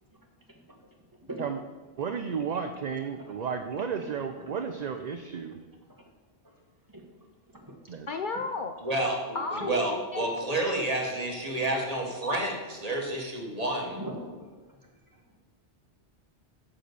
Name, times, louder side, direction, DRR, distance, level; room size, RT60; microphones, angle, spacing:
voice 1, 2.0-5.6 7.9-8.1, right 6 dB, 50° right, 6 dB, 0.6 m, -33 dB
voice 2, 3.8-4.5 5.9-6.1 6.4-6.5 6.9-7.0 7.5-7.8 9.5-9.7 13.9-14.8, right 1 dB, 15° right, 1 dB, 1.5 m, -42 dB
voice 3, 8.1-8.7 9.3-10.3, left 4 dB, 55° left, 5 dB, 0.6 m, -33 dB
voice 4, 8.8-14.0, right 1 dB, 35° right, 1 dB, 1.6 m, -30 dB
7.6 x 6.2 x 6.8 m, 1.3 s
omnidirectional pair, 1.2 m